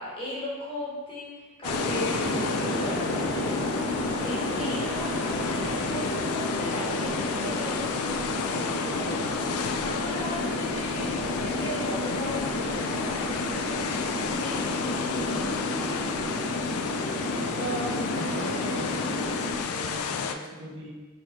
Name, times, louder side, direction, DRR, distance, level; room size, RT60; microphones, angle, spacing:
voice 1, 0.0-9.6 9.8-13.4 14.3-16.3, equal, 25° left, -7 dB, 1.1 m, -38 dB
sound 1, 1.6-20.3, left 6 dB, 80° left, 0.3 m, -32 dB
sound 2, 1.6-19.5, left 1 dB, 65° left, 0.8 m, -31 dB
voice 2, 17.4-19.1 19.4-20.9, right 2 dB, 55° right, -4 dB, 0.8 m, -37 dB
4.3 x 3.2 x 2.9 m, 1.3 s
head